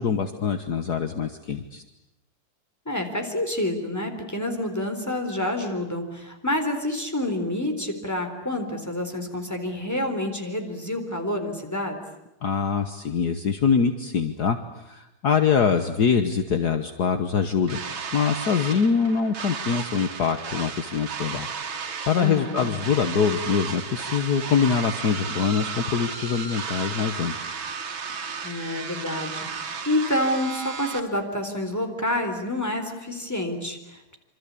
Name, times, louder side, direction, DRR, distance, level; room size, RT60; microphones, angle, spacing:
voice 1, 0.0-1.8 12.4-14.6 14.9-17.8 18.1-21.5 22.1-27.6, left 6 dB, 55° left, 8 dB, 1.7 m, -24 dB
voice 2, 2.9-12.0 22.2-22.7 28.4-34.2, left 1 dB, 10° left, 5 dB, 3.8 m, -28 dB
sound 1, 17.7-31.0, right 6 dB, 90° right, 2.6 m, -34 dB
27.0 x 26.0 x 8.5 m, 0.91 s
omnidirectional pair, 2.1 m